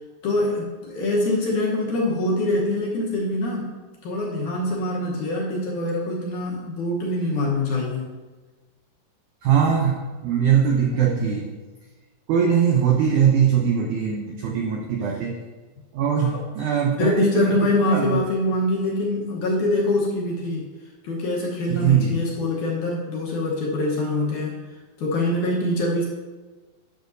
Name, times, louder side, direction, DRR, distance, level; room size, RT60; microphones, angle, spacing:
voice 1, 0.2-3.7 4.0-8.1 15.0-15.2 16.2-20.7 21.0-24.6 25.0-26.1, left 1 dB, 65° left, -3 dB, 2.1 m, -24 dB
voice 2, 9.4-10.0 10.2-11.4 12.3-15.3 16.0-17.5 17.9-18.0 21.8-22.2, right 8 dB, 90° right, 0 dB, 1.7 m, -20 dB
11.5 x 6.5 x 2.6 m, 1.3 s
omnidirectional pair, 4.5 m